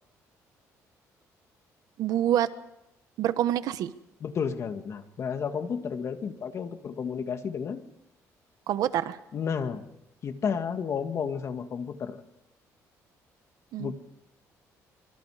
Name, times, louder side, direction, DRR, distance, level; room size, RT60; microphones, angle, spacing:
voice 1, 2.0-2.5 3.2-3.9 8.7-9.2 13.7-13.9, right 11 dB, 75° right, 13 dB, 1.2 m, -26 dB
voice 2, 4.2-7.8 9.3-9.8 10.2-12.2 13.8-13.9, left 6 dB, 50° left, 7 dB, 2.1 m, -32 dB
25.0 x 23.5 x 5.0 m, 0.86 s
cardioid pair, 120°, 6 cm